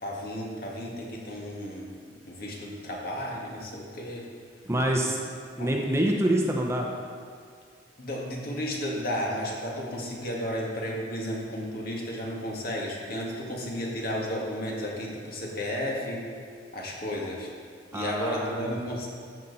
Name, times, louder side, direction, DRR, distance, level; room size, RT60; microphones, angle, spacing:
voice 1, 0.0-2.0 2.3-4.2 5.6-5.7 8.0-16.2 16.7-17.5 17.9-19.1, equal, 55° left, -2 dB, 1.9 m, -33 dB
voice 2, 4.7-5.2 5.6-6.9 17.9-18.8, right 1 dB, 15° right, 0 dB, 0.8 m, -26 dB
13.0 x 7.4 x 4.1 m, 2.2 s
head